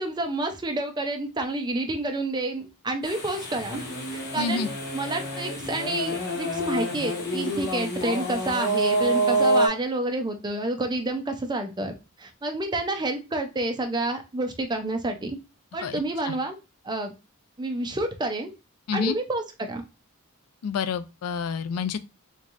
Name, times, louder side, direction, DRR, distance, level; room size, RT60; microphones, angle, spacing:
voice 1, 0.0-11.9 12.2-15.4 15.7-16.6 16.8-17.1 17.6-18.5 18.9-19.8, right 2 dB, 20° right, 0.5 m, -29 dB
sound 1, 3.0-9.7, right 1 dB, 50° left, 1.0 m, -27 dB
voice 2, 4.4-4.7 15.8-16.0 16.3-16.4 18.9-19.2 20.6-22.0, left 5 dB, 85° left, 0.4 m, -28 dB
3.5 x 3.2 x 2.5 m
head